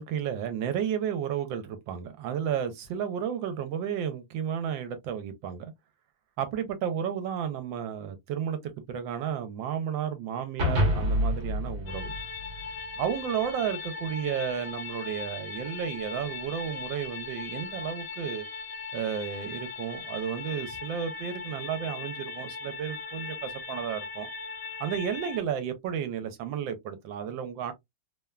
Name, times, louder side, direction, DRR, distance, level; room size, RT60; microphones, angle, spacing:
voice 1, 0.0-5.7 6.4-12.2 13.0-18.5 18.9-24.3 24.8-27.7, right 8 dB, 80° right, 1.3 m, -32 dB
sound 1, 10.6-13.1, equal, 45° right, 1.1 m, -27 dB
sound 2, 11.9-25.4, left 4 dB, 65° left, 0.7 m, -39 dB
3.3 x 2.2 x 2.2 m
omnidirectional pair, 2.1 m